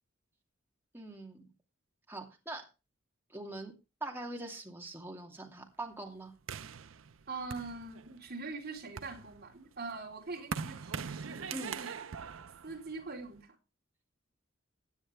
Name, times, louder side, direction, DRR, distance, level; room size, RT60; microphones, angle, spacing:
voice 1, 0.9-1.4 2.1-2.7 3.3-3.7 4.0-6.3 11.5-11.8, right 2 dB, 10° right, 2.7 m, -42 dB
sound 1, 6.5-8.3 8.8-13.4, right 6 dB, 80° right, 0.6 m, -42 dB
voice 2, 7.3-11.9 12.6-13.6, right 3 dB, 50° right, 3.8 m, -43 dB
16.5 x 9.8 x 3.4 m
head